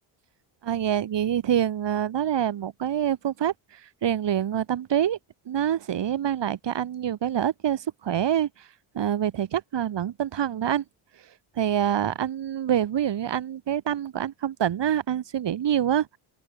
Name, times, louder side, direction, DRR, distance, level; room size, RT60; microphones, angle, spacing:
voice 1, 0.6-5.2 5.5-8.5 8.9-10.8 11.6-16.1, right 10 dB, 55° right, 7.4 m, -26 dB
open air
cardioid pair, 130°, 49 cm